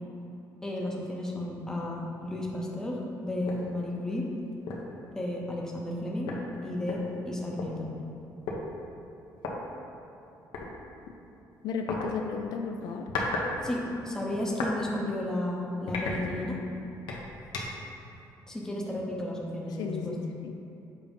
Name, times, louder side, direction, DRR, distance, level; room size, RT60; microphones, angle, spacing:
voice 1, 0.6-4.2 5.1-6.3 6.6-7.9 13.6-16.6 18.5-20.2, left 1 dB, 10° left, -3 dB, 0.7 m, -33 dB
sound 1, 3.5-3.7 4.1-4.2 4.7-4.9 5.9-6.0 6.3-7.7 8.5-8.6 9.4-9.5 10.5-10.7 11.9-12.1 12.8-13.5 13.8-14.8 15.2-15.4 15.9-16.7 17.1-17.9, left 3 dB, 80° left, 0.9 m, -35 dB
voice 2, 11.6-13.1 19.8-20.5, left 5 dB, 60° left, 4 dB, 0.4 m, -34 dB
7.1 x 2.7 x 5.1 m, 2.8 s
cardioid pair, 170°, 8 cm